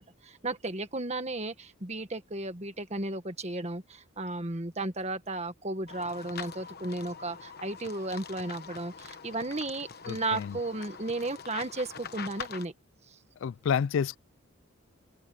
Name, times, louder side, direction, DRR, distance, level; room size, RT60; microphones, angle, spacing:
voice 1, 0.0-12.7 13.1-13.2, right 2 dB, 30° right, 1.6 m, -34 dB
sound 1, 5.9-12.7, left 6 dB, 45° left, 1.2 m, -44 dB
voice 2, 10.0-10.6 13.4-14.2, left 7 dB, 60° left, 0.3 m, -29 dB
head